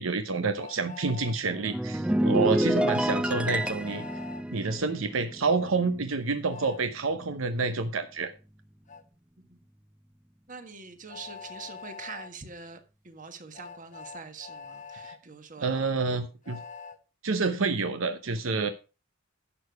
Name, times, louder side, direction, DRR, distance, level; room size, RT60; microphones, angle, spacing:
voice 1, 0.0-4.1 4.5-8.3 15.0-15.1 15.6-16.6 17.2-18.7, right 4 dB, 75° right, 0.8 m, -28 dB
Train, 0.6-1.4 3.4-4.4 6.5-6.8 8.9-9.0 11.1-12.3 13.5-15.2 16.4-17.0, left 5 dB, 40° left, 1.0 m, -44 dB
sound 1, 1.5-6.1 6.4-6.7, right 1 dB, 5° right, 0.5 m, -28 dB
voice 2, 10.5-16.2, right 4 dB, 40° right, 1.5 m, -45 dB
11.0 x 6.8 x 4.6 m
head